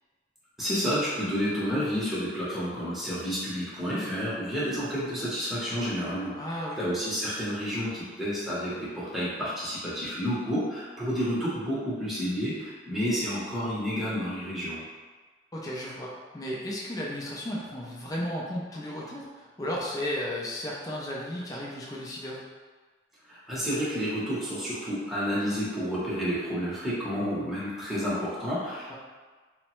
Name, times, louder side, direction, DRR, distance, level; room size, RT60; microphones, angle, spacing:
voice 1, 0.6-6.4 6.8-14.8 23.3-29.0, equal, ahead, -9 dB, 0.8 m, -30 dB
voice 2, 6.4-6.8 15.5-22.4 28.9-29.0, left 1 dB, 20° left, -4 dB, 0.4 m, -34 dB
3.1 x 2.1 x 3.0 m, 1.4 s
head